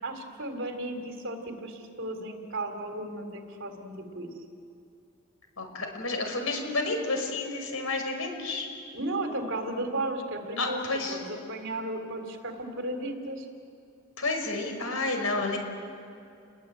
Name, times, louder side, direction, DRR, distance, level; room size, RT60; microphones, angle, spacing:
voice 1, 0.0-4.3 8.9-10.8 11.1-13.5, right 1 dB, 55° right, 5 dB, 3.6 m, -34 dB
voice 2, 5.6-8.7 10.6-11.2 14.2-15.6, left 3 dB, 70° left, 4 dB, 5.7 m, -30 dB
29.5 x 21.5 x 8.9 m, 2.6 s
head